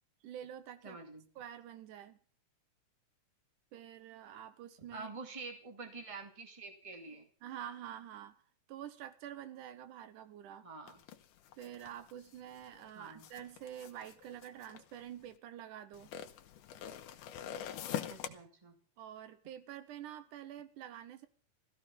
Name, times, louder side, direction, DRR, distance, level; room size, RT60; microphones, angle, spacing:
voice 1, 0.2-1.0 1.4-2.2 3.7-5.1 7.4-8.4 8.7-10.7 11.6-16.1 19.0-21.3, right 10 dB, 80° right, 12 dB, 2.4 m, -47 dB
voice 2, 0.8-1.3 4.9-7.3 10.6-11.0 12.9-13.3 18.1-18.8, right 3 dB, 10° right, 4 dB, 1.8 m, -47 dB
sound 1, 10.9-15.3 15.9-18.3, left 10 dB, 90° left, 2.5 m, -44 dB
15.0 x 14.5 x 5.4 m, 0.43 s
omnidirectional pair, 3.6 m